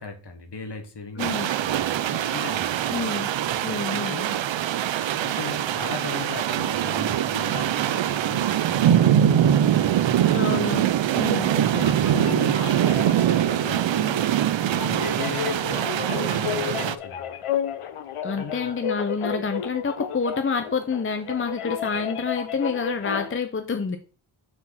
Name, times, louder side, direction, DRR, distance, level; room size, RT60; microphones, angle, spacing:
voice 1, 0.0-1.3 1.6-3.0 4.0-4.5 5.1-10.5 11.7-14.3 14.6-17.4 18.3-18.8, left 4 dB, 55° left, 1.6 m, -37 dB
voice 2, 1.2-1.5 2.9-3.3 3.6-4.2 10.3-11.5 18.2-24.0, left 5 dB, 25° left, 0.6 m, -28 dB
sound 1, 1.2-17.0, right 10 dB, 65° right, 0.5 m, -23 dB
sound 2, 11.3-23.4, left 8 dB, 90° left, 0.9 m, -33 dB
6.3 x 4.4 x 5.8 m
wide cardioid pair, 130°, 50 cm